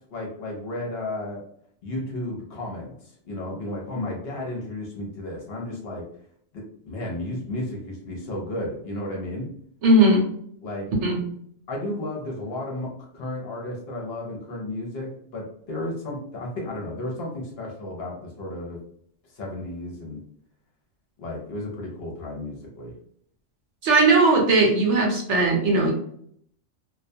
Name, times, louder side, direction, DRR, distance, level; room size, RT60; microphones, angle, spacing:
voice 1, 0.1-1.4 1.8-6.0 6.5-9.5 10.6-10.9 11.7-18.8 19.3-20.2 21.2-22.9, left 1 dB, 60° left, -1 dB, 0.8 m, -33 dB
voice 2, 9.8-10.3 11.0-11.2 23.8-25.9, right 2 dB, 70° right, 0 dB, 1.0 m, -18 dB
2.3 x 2.1 x 2.6 m, 0.65 s
omnidirectional pair, 1.3 m